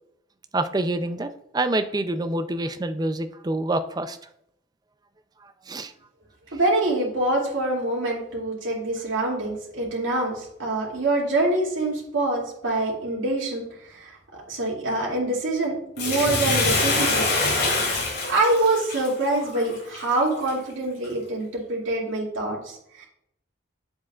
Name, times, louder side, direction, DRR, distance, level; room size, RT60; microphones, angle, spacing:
voice 1, 0.5-4.2 5.7-5.9, right 2 dB, 20° right, 10 dB, 0.4 m, -26 dB
voice 2, 6.5-14.1 14.5-17.2 18.3-23.1, right 2 dB, 85° right, -4 dB, 2.5 m, -25 dB
Bathtub (filling or washing), 16.0-20.5 21.0-21.1, left 3 dB, 55° left, 3.1 m, -25 dB
8.9 x 7.5 x 2.4 m, 0.76 s
head